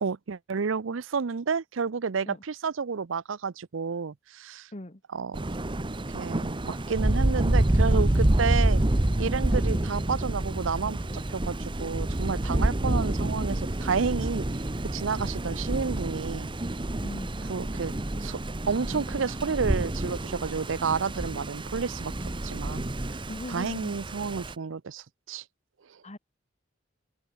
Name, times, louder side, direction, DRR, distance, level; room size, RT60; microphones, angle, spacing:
voice 1, 0.0-4.7 5.1-5.4 6.1-8.8 9.2-14.5 14.9-16.5 17.5-17.9 18.2-18.4 18.7-22.1 22.4-22.9 23.5-25.4, right 5 dB, 85° right, 0.6 m, -30 dB
Thunder, 5.3-24.5, right 1 dB, 25° right, 0.9 m, -28 dB
voice 2, 17.0-17.4 23.3-23.9 26.0-26.2, left 1 dB, 35° left, 1.9 m, -39 dB
open air
head